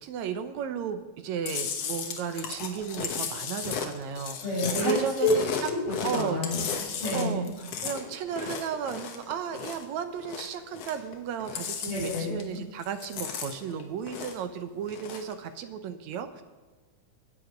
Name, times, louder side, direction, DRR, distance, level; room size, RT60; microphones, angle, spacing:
voice 1, 0.0-5.5 6.0-6.4 7.1-16.4, right 7 dB, 70° right, 9 dB, 2.1 m, -34 dB
Chewing mastication, 1.5-9.9 10.2-11.1 11.4-12.6 12.8-14.5 14.8-15.3, left 6 dB, 60° left, 2.0 m, -35 dB
voice 2, 4.4-4.9 5.2-5.3 5.7-7.5 11.8-12.7, left 3 dB, 80° left, -6 dB, 5.5 m, -30 dB
22.0 x 9.3 x 5.2 m, 1.3 s
omnidirectional pair, 3.6 m